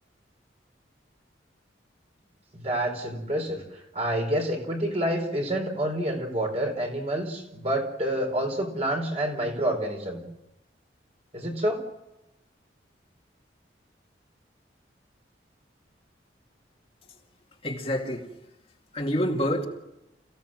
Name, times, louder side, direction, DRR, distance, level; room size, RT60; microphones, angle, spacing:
voice 1, 2.5-3.6 3.9-10.2 11.3-11.8, right 1 dB, 35° right, 3 dB, 4.5 m, -28 dB
voice 2, 17.6-18.3 18.9-19.7, equal, 30° left, 0 dB, 2.3 m, -27 dB
28.0 x 16.5 x 7.7 m, 0.94 s
head